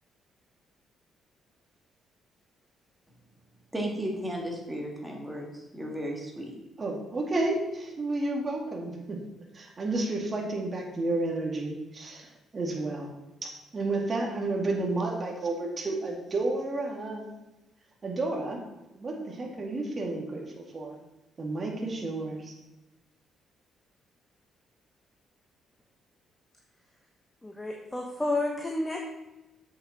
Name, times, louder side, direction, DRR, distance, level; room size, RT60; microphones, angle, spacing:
voice 1, 3.7-6.6, equal, 10° right, -1 dB, 2.7 m, -34 dB
voice 2, 6.8-9.2 9.5-13.1 13.7-17.4 18.0-18.6 18.9-21.0 21.4-22.6, right 2 dB, 40° right, 1 dB, 2.2 m, -31 dB
voice 3, 27.4-29.0, left 2 dB, 15° left, 1 dB, 1.3 m, -30 dB
7.6 x 7.1 x 4.3 m, 0.99 s
supercardioid pair, 60°, 0 cm